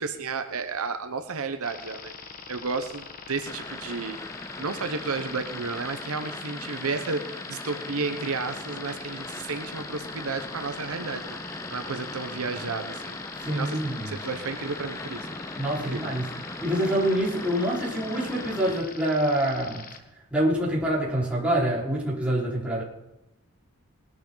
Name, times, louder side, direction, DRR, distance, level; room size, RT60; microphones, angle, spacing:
voice 1, 0.0-2.1 2.5-4.2 4.6-13.8 14.1-15.3 15.9-16.1, right 4 dB, 70° right, 1.0 m, -32 dB
sound 1, 1.6-20.0, left 5 dB, 40° left, 1.4 m, -43 dB
sound 2, 3.5-18.8, left 2 dB, 15° left, 0.7 m, -39 dB
voice 2, 13.4-14.2 15.6-16.3 16.6-19.9 20.3-22.8, right 1 dB, 5° right, 4.7 m, -26 dB
20.0 x 12.0 x 4.0 m
head